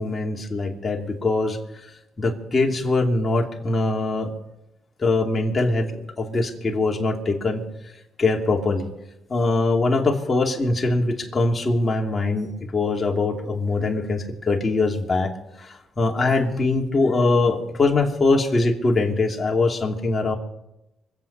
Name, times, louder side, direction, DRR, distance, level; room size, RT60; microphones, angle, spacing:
voice 1, 0.0-1.6 2.2-4.3 5.0-7.6 8.2-8.9 9.3-15.3 15.6-20.4, left 3 dB, 30° left, 0 dB, 2.9 m, -22 dB
25.5 x 8.5 x 5.6 m, 0.92 s
cardioid pair, 90°, 0 cm